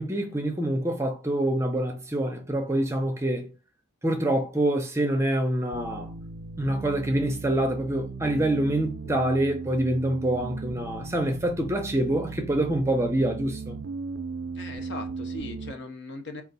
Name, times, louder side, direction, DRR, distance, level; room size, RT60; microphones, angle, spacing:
voice 1, 0.0-3.5 4.0-6.1 6.6-13.8, right 1 dB, 15° right, 0.5 m, -26 dB
sound 1, 5.7-15.7, right 4 dB, 65° right, 0.4 m, -37 dB
voice 2, 14.5-16.4, left 2 dB, 55° left, 0.7 m, -39 dB
4.4 x 2.4 x 3.9 m
head